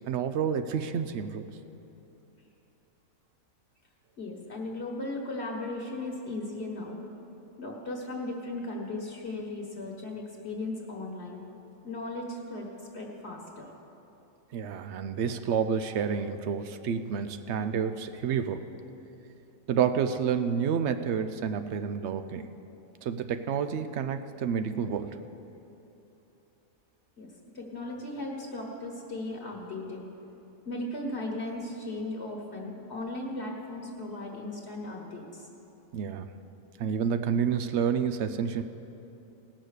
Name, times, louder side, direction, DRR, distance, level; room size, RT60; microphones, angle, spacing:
voice 1, 0.1-1.4 14.5-18.7 19.7-22.5 23.0-25.2 35.9-36.3 36.8-38.6, right 7 dB, 65° right, 9 dB, 0.8 m, -29 dB
voice 2, 4.2-7.0 7.6-11.4 11.8-13.7 27.2-30.1 30.6-35.5, left 2 dB, 50° left, 0 dB, 1.5 m, -37 dB
18.0 x 6.3 x 6.6 m, 2.9 s
omnidirectional pair, 1.4 m